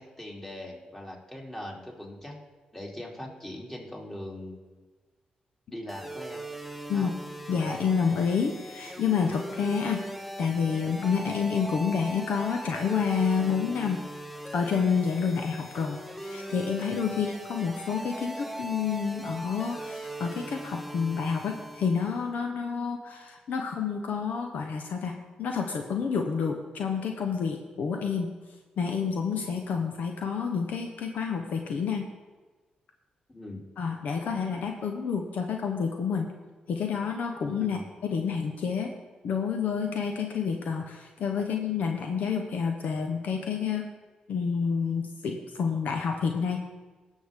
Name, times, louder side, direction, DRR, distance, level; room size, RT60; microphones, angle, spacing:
voice 1, 0.0-2.4 2.7-4.8 5.7-6.5 6.9-7.1 17.1-17.3 33.3-33.6 37.6-37.9, left 1 dB, 15° left, -2 dB, 3.0 m, -41 dB
sound 1, 5.9-22.3, right 1 dB, ahead, 0.8 m, -40 dB
voice 2, 7.5-10.0 10.4-14.0 14.5-25.1 25.4-28.3 28.8-32.0 33.8-36.3 36.7-37.8 38.0-38.9 39.2-43.8 44.3-46.6, left 6 dB, 70° left, 4 dB, 0.8 m, -29 dB
17.0 x 6.4 x 3.6 m, 1.3 s
supercardioid pair, 55°, 3 cm